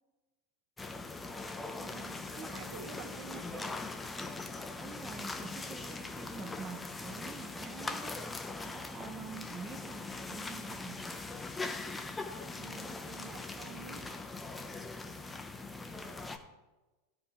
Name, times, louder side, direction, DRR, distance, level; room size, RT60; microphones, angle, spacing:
sound 1, 0.8-16.4, left 3 dB, 15° left, 0.8 m, -41 dB
voice 1, 1.7-3.7 12.5-14.1, right 8 dB, 55° right, 6 dB, 1.1 m, -49 dB
voice 2, 4.8-8.2 8.6-11.0, right 6 dB, 25° right, 4 dB, 0.8 m, -47 dB
12.5 x 5.4 x 4.5 m, 1.1 s
hypercardioid pair, 90°, 0 cm